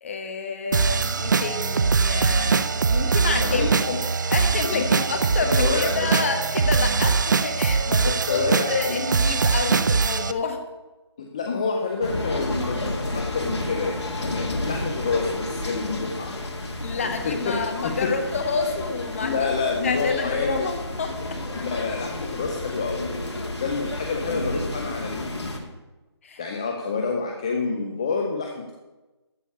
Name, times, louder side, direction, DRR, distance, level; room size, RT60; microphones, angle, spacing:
voice 1, 0.0-3.8 4.3-7.1 7.4-10.6 16.8-19.5 19.8-21.1 26.2-26.7, left 4 dB, 30° left, 5 dB, 1.4 m, -29 dB
sound 1, 0.7-10.3, right 5 dB, 45° right, 0.5 m, -22 dB
voice 2, 3.4-4.0 4.7-5.0 5.5-5.9 8.1-9.0 11.2-16.4 17.2-18.1 19.2-20.7 21.5-23.3 23.6-25.7 26.4-28.7, left 4 dB, 15° left, 1 dB, 0.5 m, -28 dB
sound 2, 12.0-25.6, left 1 dB, 70° left, 2.2 m, -31 dB
13.5 x 5.1 x 8.3 m, 1.1 s
figure-of-eight pair, 165°, 15 cm